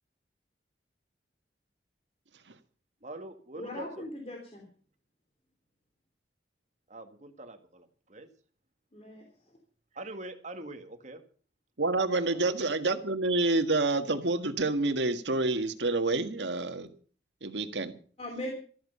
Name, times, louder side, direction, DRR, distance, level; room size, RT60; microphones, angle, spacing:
voice 1, 3.0-4.1 6.9-8.3 9.9-11.2 12.1-12.4, right 1 dB, 40° right, 7 dB, 1.9 m, -44 dB
voice 2, 3.6-4.6 8.9-9.3 18.2-18.5, left 1 dB, 35° left, 2 dB, 3.0 m, -39 dB
voice 3, 11.8-16.9 17.4-17.9, right 2 dB, 80° right, 8 dB, 1.7 m, -28 dB
13.5 x 13.5 x 5.5 m, 0.43 s
head